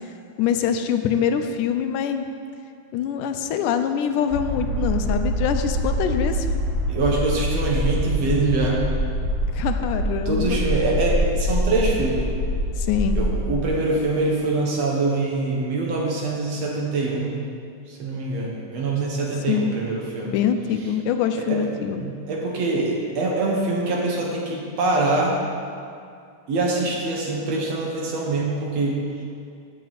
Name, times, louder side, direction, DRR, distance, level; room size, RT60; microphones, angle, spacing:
voice 1, 0.4-2.3 2.9-6.5 9.6-10.6 12.8-13.2 19.5-19.7 20.3-22.0, left 8 dB, 85° left, 7 dB, 2.1 m, -24 dB
sound 1, 4.3-13.6, equal, 15° right, 1.2 m, -25 dB
voice 2, 6.9-8.8 10.3-12.3 13.2-17.3 17.9-20.3 21.3-21.6 22.0-25.4 26.5-29.0, right 2 dB, 60° right, -2 dB, 2.1 m, -24 dB
15.0 x 7.5 x 4.1 m, 2.3 s
omnidirectional pair, 3.7 m